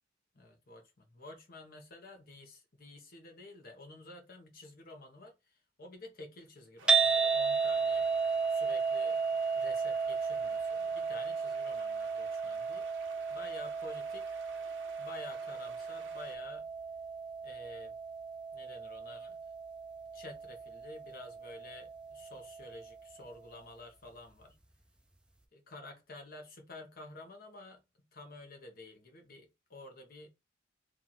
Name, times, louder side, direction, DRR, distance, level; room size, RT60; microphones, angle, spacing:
voice 1, 0.3-8.1 8.5-9.2 9.5-12.9 13.3-14.4 15.0-16.7 17.4-17.9 18.5-19.4 20.1-24.6 25.5-30.3, left 2 dB, 50° left, 1.0 m, -50 dB
sound 1, 6.8-16.4, right 5 dB, 75° right, 0.7 m, -55 dB
sound 2, 6.9-23.1, right 5 dB, 5° right, 0.3 m, -34 dB
3.0 x 2.6 x 4.0 m
head